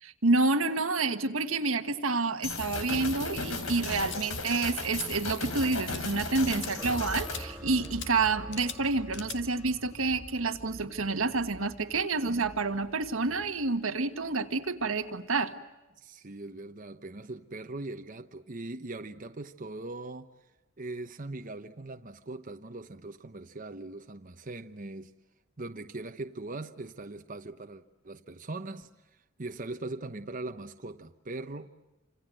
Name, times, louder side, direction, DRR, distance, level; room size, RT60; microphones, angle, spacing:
voice 1, 0.0-15.5, right 3 dB, 85° right, 1.6 m, -29 dB
sound 1, 2.4-7.4, left 3 dB, 90° left, 4.4 m, -35 dB
sound 2, 4.1-4.2 4.7-5.1 5.3-5.6 5.9-6.0 6.5-6.7 7.2-7.4 7.8-8.1 8.5-8.8 9.1-9.4, left 8 dB, 60° left, 2.2 m, -41 dB
sound 3, 6.7-15.0, equal, 10° right, 2.4 m, -46 dB
voice 2, 16.0-20.3 20.8-25.1 25.6-31.7, right 2 dB, 40° right, 1.0 m, -40 dB
29.0 x 26.5 x 7.8 m
head